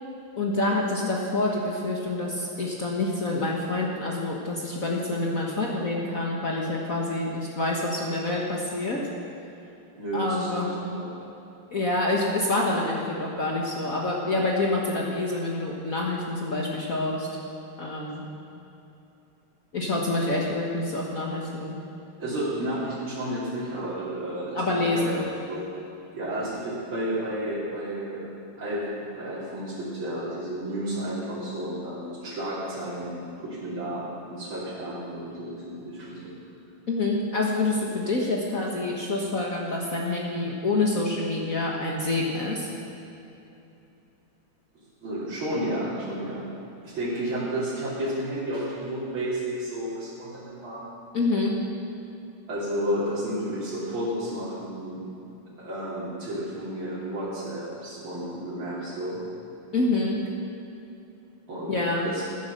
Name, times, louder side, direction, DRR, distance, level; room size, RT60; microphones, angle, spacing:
voice 1, 0.4-9.0 10.1-10.7 11.7-17.3 17.8-18.3 19.7-21.8 24.5-25.2 36.9-42.7 51.1-51.5 59.7-60.2 61.7-62.1, left 2 dB, 45° left, -2 dB, 1.6 m, -27 dB
voice 2, 10.0-11.1 20.4-20.5 22.2-25.2 25.5-25.6 26.1-28.3 28.6-28.9 29.1-36.3 45.0-46.5 46.8-50.9 52.5-55.0 55.6-59.2 61.5-61.8 62.0-62.2, right 1 dB, 70° right, -10 dB, 3.8 m, -32 dB
15.5 x 10.5 x 6.5 m, 2.8 s
omnidirectional pair, 2.3 m